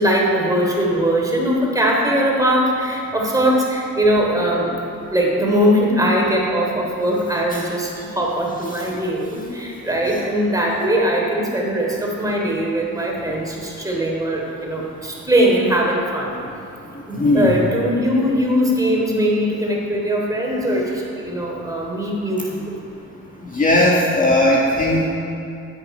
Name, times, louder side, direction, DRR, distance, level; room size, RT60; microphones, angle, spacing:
voice 1, 0.0-4.7 5.1-16.4 17.1-22.8, equal, 10° right, -2 dB, 3.4 m, -20 dB
voice 2, 17.2-17.6 23.5-25.1, left 1 dB, 25° left, -3 dB, 1.8 m, -17 dB
13.5 x 9.9 x 5.6 m, 2.7 s
cardioid pair, 90°, 30 cm